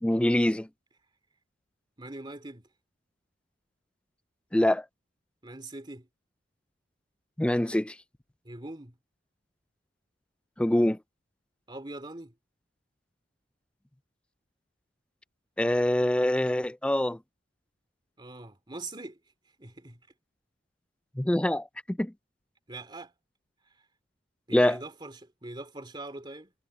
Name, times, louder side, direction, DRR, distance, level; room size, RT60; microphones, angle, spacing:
voice 1, 0.0-0.7 4.5-4.8 7.4-8.0 10.6-11.0 15.6-17.2 21.2-22.1 24.5-24.8, left 1 dB, 5° left, 0.3 m, -25 dB
voice 2, 2.0-2.6 5.4-6.1 8.4-8.9 11.7-12.3 18.2-19.2 19.6-20.0 22.7-23.1 24.5-26.5, right 2 dB, 25° right, 2.7 m, -42 dB
head